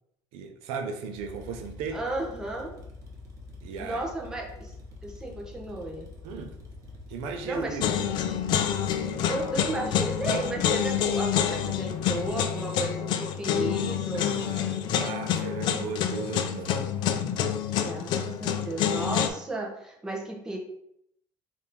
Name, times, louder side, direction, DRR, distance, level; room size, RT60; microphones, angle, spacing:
voice 1, 0.3-2.0 3.6-4.0 6.2-6.5 7.1-8.1 14.1-16.9, right 5 dB, 80° right, 5 dB, 0.6 m, -36 dB
sound 1, 1.1-12.4, left 2 dB, 35° right, 0.8 m, -46 dB
voice 2, 1.9-2.7 3.8-4.7 5.0-6.1 7.4-7.8 9.3-14.3 17.8-20.6, right 2 dB, 5° right, -1 dB, 0.6 m, -34 dB
sound 2, 7.8-19.3, left 9 dB, 50° left, 0.3 m, -27 dB
3.6 x 2.5 x 4.3 m, 0.76 s
cardioid pair, 160°, 10 cm